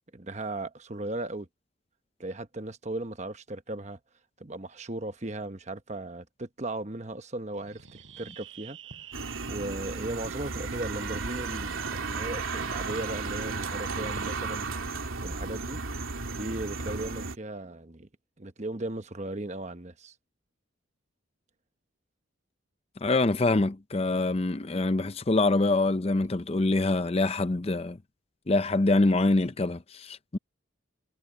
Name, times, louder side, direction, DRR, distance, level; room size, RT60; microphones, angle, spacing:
voice 1, 0.1-1.5 2.2-4.0 4.4-14.7 15.2-15.8 16.3-18.1 18.4-20.1, right 2 dB, 35° right, 1.1 m, -37 dB
Fireworks, 7.5-15.7, right 5 dB, 70° right, 6.3 m, -48 dB
sound 1, 9.1-17.4, right 4 dB, 85° right, 2.9 m, -34 dB
voice 2, 23.0-28.0 28.5-30.4, left 2 dB, 30° left, 0.5 m, -25 dB
head